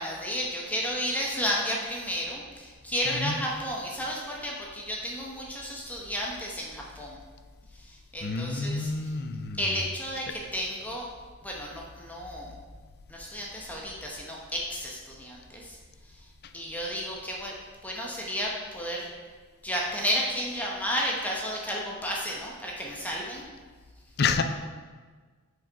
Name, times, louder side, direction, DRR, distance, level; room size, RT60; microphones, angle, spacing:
voice 1, 0.0-7.2 7.8-9.1 9.6-11.1 11.4-12.5 13.1-15.8 16.5-17.5 17.8-19.1 19.6-23.4, equal, 5° left, -2 dB, 0.8 m, -32 dB
voice 2, 3.0-3.4 8.2-9.8 24.2-24.4, left 4 dB, 50° left, 8 dB, 0.4 m, -29 dB
5.8 x 4.9 x 4.6 m, 1.5 s
head